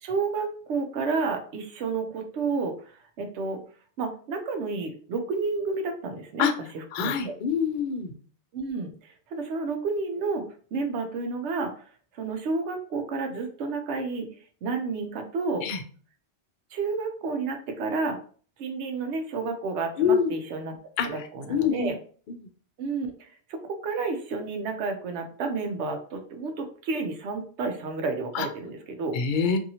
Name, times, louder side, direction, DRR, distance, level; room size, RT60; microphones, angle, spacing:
voice 1, 0.0-3.6 4.0-7.3 8.5-10.4 10.7-14.3 14.6-15.7 16.7-18.2 18.6-20.7 21.0-21.9 22.8-23.1 23.5-29.2, right 4 dB, 85° right, 4 dB, 0.9 m, -31 dB
voice 2, 6.9-8.1 15.6-15.8 20.0-20.3 21.0-21.9 22.3-22.5 28.3-28.5 29.1-29.6, left 6 dB, 60° left, 7 dB, 0.6 m, -26 dB
2.7 x 2.7 x 2.7 m, 0.43 s
omnidirectional pair, 1.1 m